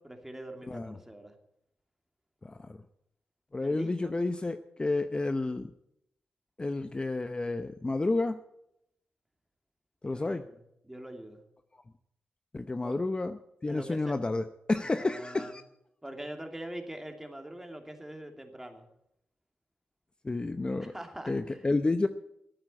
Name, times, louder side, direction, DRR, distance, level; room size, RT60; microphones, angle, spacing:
voice 1, 0.0-1.3 3.6-4.1 10.0-10.5 10.8-11.4 12.8-13.0 13.7-14.1 14.9-15.5 16.0-18.9 20.8-21.7, right 1 dB, 10° right, 4 dB, 2.7 m, -43 dB
voice 2, 0.7-1.0 2.4-2.8 3.5-5.7 6.6-8.4 10.0-10.4 12.5-15.6 20.2-20.9 21.3-22.1, left 2 dB, 25° left, 9 dB, 0.7 m, -30 dB
13.0 x 8.9 x 8.8 m, 0.79 s
cardioid pair, 70°, 4 cm